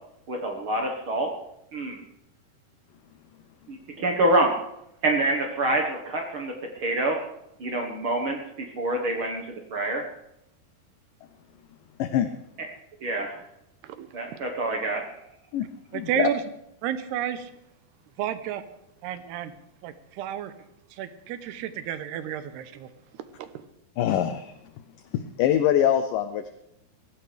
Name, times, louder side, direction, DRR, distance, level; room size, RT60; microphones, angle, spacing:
voice 1, 0.3-1.3 1.7-2.0 3.7-4.5 5.0-7.2 7.6-9.4 9.7-10.0 13.0-13.4 14.1-15.0, right 2 dB, 70° right, 2 dB, 1.2 m, -26 dB
voice 2, 12.0-12.3 15.5-15.7 15.9-16.3 24.0-24.5 25.4-26.5, left 10 dB, 75° left, 9 dB, 2.0 m, -23 dB
voice 3, 15.9-16.4 16.8-17.5 18.2-18.6 19.0-19.5 19.8-20.5 21.0-22.9 23.4-23.5, right 11 dB, 85° right, 11 dB, 3.0 m, -31 dB
22.0 x 16.5 x 3.4 m, 0.82 s
omnidirectional pair, 4.6 m